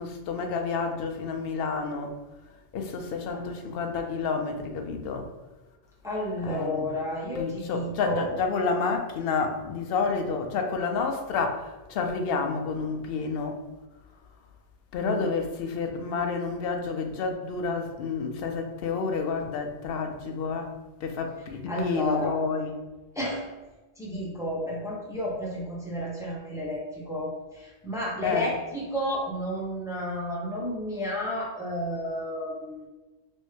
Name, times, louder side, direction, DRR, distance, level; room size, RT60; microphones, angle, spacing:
voice 1, 0.0-2.1 2.7-5.3 6.4-6.8 7.4-13.6 14.9-20.7 21.0-22.7 28.2-28.5, left 4 dB, 65° left, 5 dB, 0.7 m, -29 dB
voice 2, 6.0-8.3 15.0-15.2 21.7-22.4 23.1-23.5 24.0-32.8, left 1 dB, 5° right, -4 dB, 0.6 m, -31 dB
3.1 x 3.1 x 3.1 m, 1.2 s
omnidirectional pair, 1.2 m